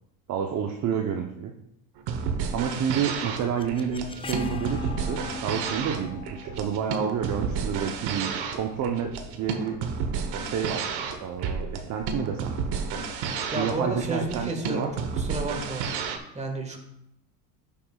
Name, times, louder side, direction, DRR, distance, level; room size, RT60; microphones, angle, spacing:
voice 1, 0.3-1.5 2.5-9.8 10.4-10.8 11.2-12.5 13.5-14.9, right 7 dB, 40° right, 3 dB, 0.8 m, -29 dB
sound 1, 2.0-16.2, right 5 dB, 55° right, 1.2 m, -31 dB
sound 2, 2.8-8.7, left 2 dB, 10° left, 0.5 m, -40 dB
voice 2, 13.5-15.9 16.3-16.8, right 2 dB, 15° right, 3 dB, 1.6 m, -32 dB
11.5 x 7.0 x 2.3 m, 0.80 s
supercardioid pair, 110°, 46 cm